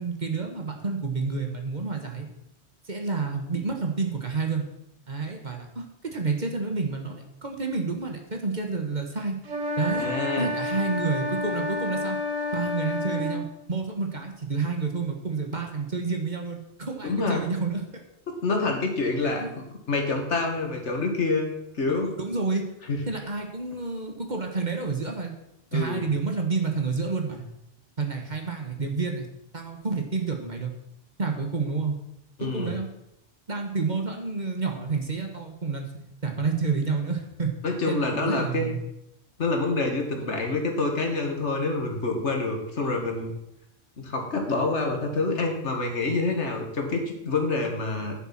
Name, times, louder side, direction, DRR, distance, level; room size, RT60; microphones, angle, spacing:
voice 1, 0.0-2.3 2.8-4.7 5.1-9.4 9.8-10.1 10.4-12.2 12.5-17.8 19.2-19.5 22.2-22.7 23.1-25.3 25.7-27.4 28.0-29.3 29.5-30.7 31.2-32.0 32.4-32.9 33.5-35.8 36.2-37.5 37.9-38.8, right 4 dB, 35° right, 3 dB, 1.6 m, -29 dB
sound 1, 9.4-13.4, left 2 dB, 85° right, 2.1 m, -29 dB
voice 2, 9.9-10.5 17.0-17.4 18.4-19.4 19.9-22.1 22.9-23.0 25.7-26.1 32.4-32.8 37.6-38.7 39.4-43.3 44.0-48.1, left 3 dB, 65° left, 2 dB, 2.1 m, -27 dB
9.9 x 7.0 x 6.0 m, 0.83 s
omnidirectional pair, 1.3 m